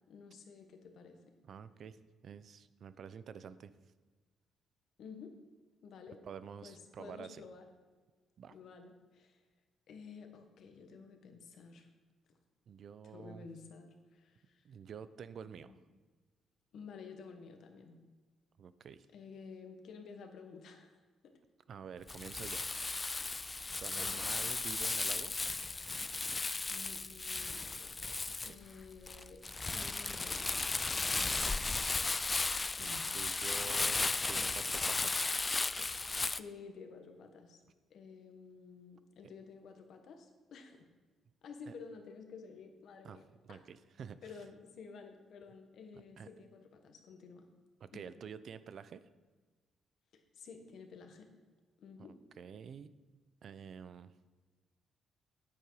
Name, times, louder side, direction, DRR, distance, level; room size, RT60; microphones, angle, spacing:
voice 1, 0.1-1.2 5.0-5.4 5.8-6.2 6.6-7.6 8.5-9.4 9.9-11.9 13.1-14.6 15.6-15.8 16.7-18.0 19.1-20.9 21.2-21.3 23.2-23.3 23.6-23.7 24.0-24.2 26.7-28.0 28.4-29.4 29.7-30.5 32.8-33.0 36.1-37.6 37.9-40.9 41.4-43.6 44.2-47.4 47.9-48.0 50.1-51.3 51.8-52.1, left 5 dB, 65° left, 5 dB, 1.4 m, -52 dB
voice 2, 1.4-3.7 6.2-7.4 8.4-8.5 12.7-13.5 14.6-15.8 18.6-19.1 21.7-22.6 23.8-25.3 28.3-28.6 31.1-31.6 32.8-35.3 41.7-41.8 43.0-44.2 46.2-46.3 47.8-49.1 52.0-52.1 52.4-52.9 53.4-54.1, right 7 dB, 55° right, 14 dB, 0.5 m, -49 dB
Crumpling crinkling, 22.1-36.4, left 3 dB, 25° left, 0.3 m, -35 dB
8.7 x 8.7 x 4.9 m, 1.4 s
cardioid pair, 100°, 0 cm